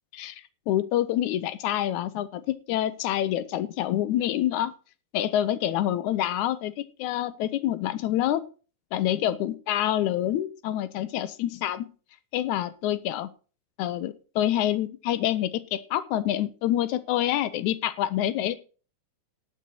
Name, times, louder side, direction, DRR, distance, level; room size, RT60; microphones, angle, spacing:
voice 1, 0.7-4.7 5.1-8.4 8.9-11.9 12.3-13.3 13.8-18.6, left 12 dB, 75° left, 13 dB, 1.9 m, -27 dB
18.5 x 6.3 x 4.3 m, 0.37 s
omnidirectional pair, 3.9 m